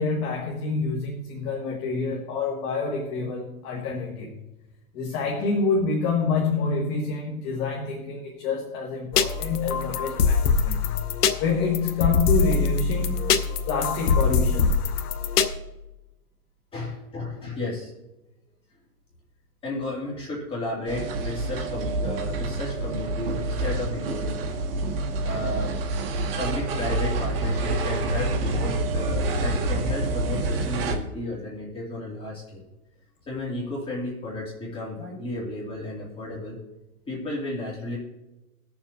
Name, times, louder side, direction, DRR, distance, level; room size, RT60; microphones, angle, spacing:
voice 1, 0.0-4.4 4.9-11.1 11.4-13.4 13.7-14.8, left 4 dB, 25° left, -1 dB, 1.3 m, -27 dB
sound 1, 9.1-15.5, left 5 dB, 80° left, 0.9 m, -23 dB
voice 2, 16.7-17.9 19.6-24.6 25.2-25.7 26.4-32.6 33.3-36.6 37.1-38.0, left 2 dB, 10° left, -4 dB, 2.4 m, -33 dB
sound 2, 20.9-31.0, right 2 dB, 40° right, 1.1 m, -27 dB
20.5 x 7.1 x 2.6 m, 1.0 s
hypercardioid pair, 155°, 45 cm